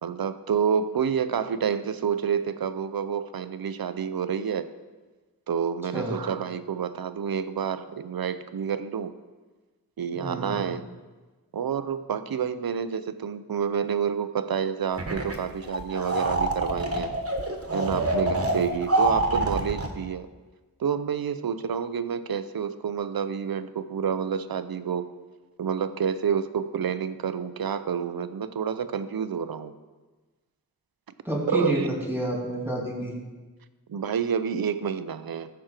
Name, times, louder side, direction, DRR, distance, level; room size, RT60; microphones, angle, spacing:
voice 1, 0.0-4.7 5.5-9.1 10.0-10.8 11.5-17.1 17.7-20.3 20.8-25.1 25.6-29.7 31.5-31.9 33.9-35.5, right 7 dB, 75° right, 12 dB, 0.6 m, -28 dB
voice 2, 10.2-10.7 31.2-33.1, right 1 dB, 5° right, -2 dB, 2.7 m, -29 dB
sound 1, 15.0-15.4 15.6-19.9, right 2 dB, 40° right, 1.4 m, -26 dB
14.0 x 6.2 x 4.4 m, 1.3 s
wide cardioid pair, 65°, 37 cm